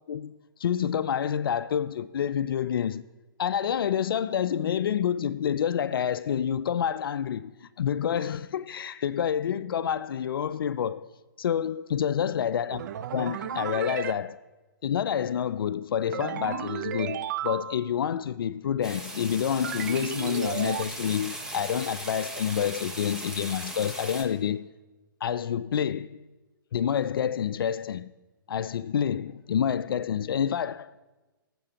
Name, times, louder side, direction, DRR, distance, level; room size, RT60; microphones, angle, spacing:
voice 1, 0.1-3.0 3.4-11.1 11.4-12.9 13.1-14.4 14.8-24.7 25.2-26.2 26.7-28.1 28.5-31.0, left 8 dB, 75° left, 0.4 m, -28 dB
sound 1, 12.7-14.1 16.1-17.9 19.6-20.8, right 9 dB, 55° right, 0.5 m, -34 dB
sound 2, 18.8-24.2, right 1 dB, 5° right, 1.0 m, -38 dB
22.5 x 7.6 x 2.9 m
hypercardioid pair, 150°, 12 cm